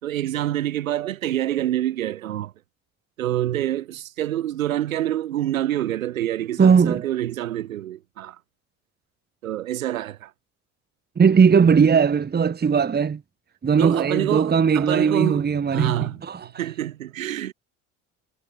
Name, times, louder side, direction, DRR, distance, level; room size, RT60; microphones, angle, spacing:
voice 1, 0.0-2.5 3.2-8.4 9.4-10.3 13.8-17.5, right 12 dB, 85° right, 4.1 m, -27 dB
voice 2, 6.6-7.0 11.2-13.2 13.6-16.5, right 6 dB, 25° right, 1.6 m, -18 dB
hypercardioid pair, 65°, 40 cm